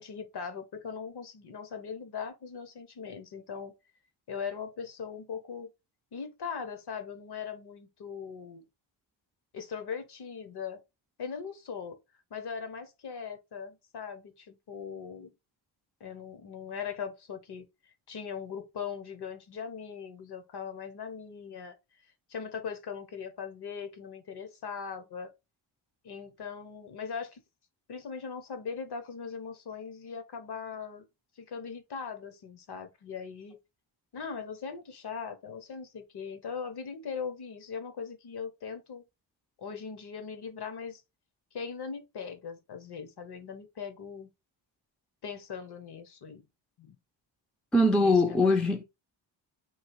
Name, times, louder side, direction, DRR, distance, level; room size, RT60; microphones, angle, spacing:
voice 1, 0.0-3.7 4.3-5.7 6.1-8.6 9.5-10.8 11.2-12.0 12.3-15.3 16.0-17.7 18.1-21.7 22.3-25.3 26.0-27.4 27.9-31.1 31.4-33.6 34.1-39.0 39.6-41.0 41.5-44.3 45.2-46.4 46.8-47.0 48.0-48.4, left 6 dB, 55° left, 0.9 m, -40 dB
voice 2, 47.7-48.8, left 2 dB, ahead, 0.4 m, -22 dB
3.2 x 2.8 x 4.6 m
wide cardioid pair, 165°, 47 cm